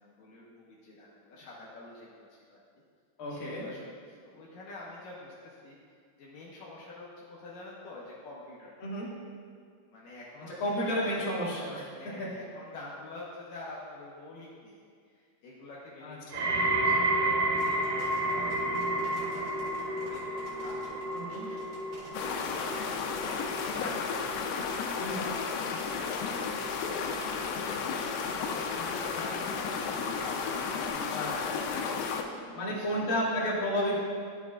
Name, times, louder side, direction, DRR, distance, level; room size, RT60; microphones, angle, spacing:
voice 1, 0.0-2.6 3.3-5.8 6.2-8.7 9.9-11.3 12.0-14.8 15.1-20.2 20.6-24.7 25.1-33.1, left 2 dB, 70° left, -6 dB, 2.4 m, -47 dB
voice 2, 3.2-3.7 8.8-9.1 10.6-11.9 12.2-12.3 16.0-16.5 21.1-21.5 25.0-25.3 31.1-31.7 32.5-34.0, equal, 45° left, -7 dB, 1.9 m, -32 dB
sound 1, 16.3-27.4 27.8-28.3 29.0-29.1, right 1 dB, 80° right, 2.1 m, -32 dB
sound 2, 17.5-30.9, right 1 dB, 60° right, 1.1 m, -52 dB
sound 3, 22.1-32.2, left 5 dB, 90° left, 2.6 m, -33 dB
12.0 x 7.2 x 2.4 m, 2.1 s
omnidirectional pair, 4.4 m